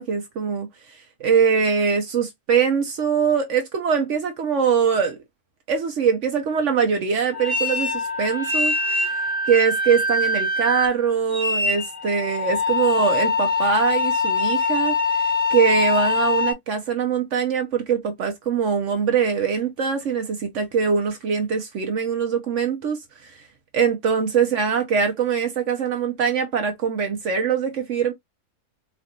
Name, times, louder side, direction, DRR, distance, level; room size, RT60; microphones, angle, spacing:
voice 1, 0.0-5.2 5.7-9.2 9.5-23.4 23.7-28.1, right 6 dB, 60° right, 1.0 m, -23 dB
sound 1, 7.3-16.5, left 3 dB, 15° left, 1.4 m, -23 dB
4.3 x 2.5 x 2.7 m
omnidirectional pair, 1.5 m